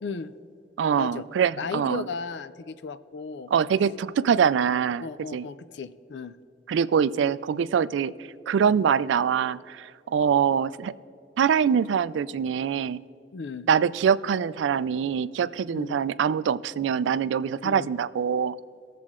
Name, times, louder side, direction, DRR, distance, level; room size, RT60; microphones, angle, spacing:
voice 1, 0.0-0.3 1.0-1.2 1.6-3.5 5.0-6.4 13.3-13.7 15.7-16.0 17.6-17.9, left 4 dB, 75° left, 14 dB, 0.4 m, -35 dB
voice 2, 0.8-2.0 3.5-5.0 5.3-5.4 6.7-8.1 8.5-10.9 11.4-13.0 13.7-18.6, right 7 dB, 90° right, 17 dB, 0.3 m, -24 dB
19.0 x 7.5 x 3.7 m, 2.5 s
head